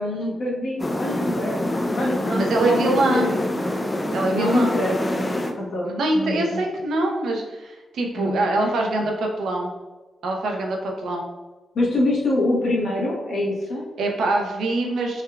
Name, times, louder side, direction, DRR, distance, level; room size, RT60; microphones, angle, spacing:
voice 1, 0.0-1.6 1.9-3.3 4.3-5.9 6.1-6.6 8.2-8.7 11.7-13.9, left 1 dB, 60° left, -3 dB, 1.0 m, -25 dB
sound 1, 0.8-5.5, left 1 dB, 20° left, 0.4 m, -26 dB
voice 2, 2.3-3.3 4.1-4.8 5.8-9.7 10.2-11.2 14.0-15.2, right 2 dB, 85° right, 1 dB, 0.6 m, -24 dB
3.6 x 3.3 x 2.2 m, 1.2 s
wide cardioid pair, 115°, 0 cm